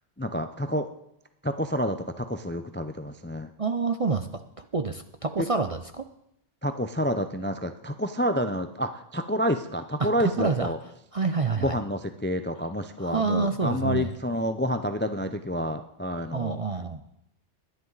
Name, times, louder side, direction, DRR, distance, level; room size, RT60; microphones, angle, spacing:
voice 1, 0.2-0.9 1.4-3.5 5.4-5.5 6.6-10.8 11.6-16.6, equal, 15° left, 9 dB, 0.4 m, -29 dB
voice 2, 3.6-4.3 4.6-6.0 10.0-10.7 11.1-11.8 13.0-14.1 16.3-17.0, right 4 dB, 40° right, 8 dB, 0.5 m, -27 dB
20.5 x 10.5 x 4.0 m, 0.81 s
omnidirectional pair, 1.2 m